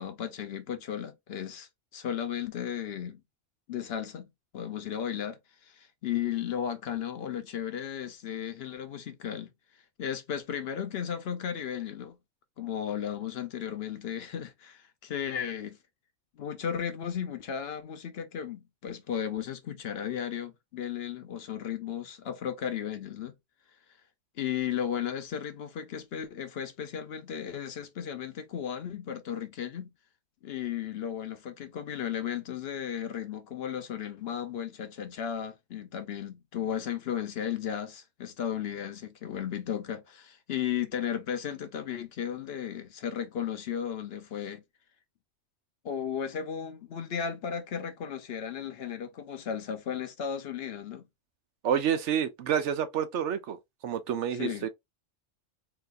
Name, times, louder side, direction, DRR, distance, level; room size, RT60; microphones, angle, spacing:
voice 1, 0.0-3.2 3.7-9.5 10.0-12.2 12.6-15.8 16.4-23.3 24.4-29.9 30.4-44.6 45.8-51.1 54.3-54.7, left 9 dB, 60° left, 0.8 m, -35 dB
voice 2, 51.6-53.6 53.8-54.7, right 8 dB, 75° right, 0.9 m, -28 dB
4.0 x 2.7 x 2.4 m
omnidirectional pair, 1.3 m